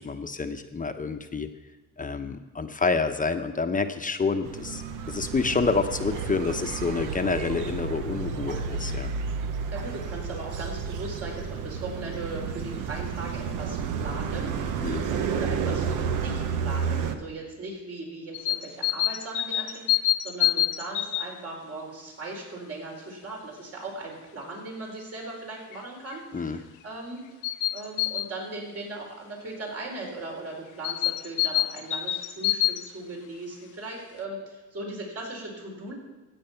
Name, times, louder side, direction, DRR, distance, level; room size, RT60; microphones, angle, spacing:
voice 1, 0.0-1.5 2.0-4.8 5.1-9.1 14.8-15.0 26.3-26.6, left 4 dB, 25° left, 7 dB, 0.9 m, -28 dB
sound 1, 4.4-17.2, right 6 dB, 85° right, 1.0 m, -31 dB
voice 2, 9.7-27.2 27.7-35.9, right 2 dB, 50° right, -1 dB, 4.4 m, -38 dB
sound 2, 18.3-21.3 25.7-25.8 26.1-26.2 27.4-28.3 30.8-32.9, left 14 dB, 80° left, 0.7 m, -26 dB
14.5 x 8.7 x 5.8 m, 1.2 s
cardioid pair, 90°, 30 cm